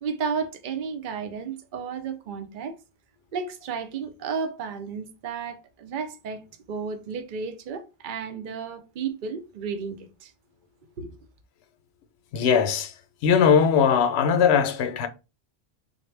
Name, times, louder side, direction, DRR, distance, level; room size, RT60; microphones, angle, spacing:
voice 1, 0.0-2.8 3.3-10.3 11.0-11.2, right 6 dB, 55° right, 0.7 m, -33 dB
voice 2, 12.3-12.9 13.2-15.1, left 7 dB, 75° left, 0.8 m, -20 dB
3.9 x 2.1 x 3.2 m
omnidirectional pair, 1.1 m